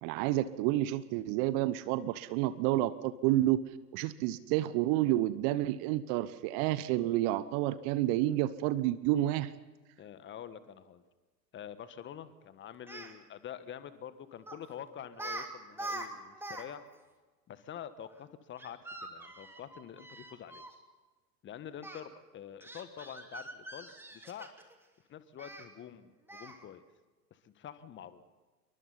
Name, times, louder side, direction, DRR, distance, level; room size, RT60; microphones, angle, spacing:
voice 1, 0.0-3.6 3.9-9.5, right 14 dB, 35° right, 16 dB, 1.0 m, -29 dB
voice 2, 10.0-11.0 11.5-16.9 17.5-20.6 21.4-24.5 25.1-26.8 27.4-28.2, left 9 dB, 25° left, 12 dB, 1.5 m, -46 dB
Speech, 12.7-13.1 14.5-14.7 15.1-15.5 15.7-16.6 16.9-17.0 18.6-20.7 21.8-22.0 22.6-24.7 25.4-25.6 26.3-26.6, right 2 dB, 5° right, 2.8 m, -43 dB
28.0 x 23.5 x 4.1 m, 1.3 s
figure-of-eight pair, 95°, 49 cm